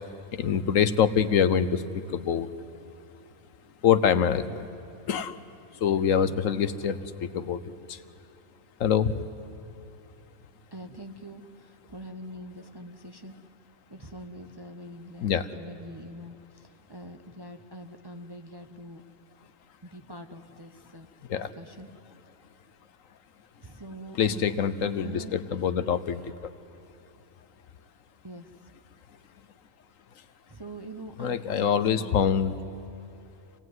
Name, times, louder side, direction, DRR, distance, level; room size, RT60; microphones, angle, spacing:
voice 1, 0.3-1.8 2.1-2.5 3.8-4.7 5.1-5.4 5.7-8.0 8.8-9.2 15.2-15.5 21.3-21.5 24.2-26.5 31.2-32.5, left 8 dB, 70° left, 12 dB, 1.2 m, -25 dB
voice 2, 10.7-13.4 13.9-19.0 19.8-21.1 21.3-21.9 23.6-24.5 24.8-25.3 28.2-28.7 30.5-32.3, right 1 dB, 20° right, 6 dB, 0.7 m, -44 dB
26.0 x 18.0 x 9.5 m, 2.8 s
omnidirectional pair, 1.5 m